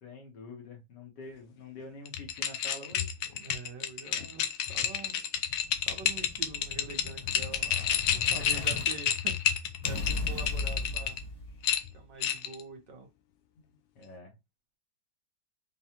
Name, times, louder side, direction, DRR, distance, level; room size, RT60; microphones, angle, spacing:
voice 1, 0.0-3.1 8.3-8.6 13.5-14.4, left 3 dB, 65° left, 1.9 m, -47 dB
sound 1, 2.1-11.2 11.6-12.6, left 9 dB, 85° left, 1.4 m, -30 dB
voice 2, 3.3-5.3 5.9-11.2 11.9-13.1, right 4 dB, 70° right, 1.7 m, -45 dB
Explosion, 5.5-8.8 9.8-11.8, left 3 dB, 15° left, 1.2 m, -37 dB
5.3 x 2.3 x 2.9 m
omnidirectional pair, 2.1 m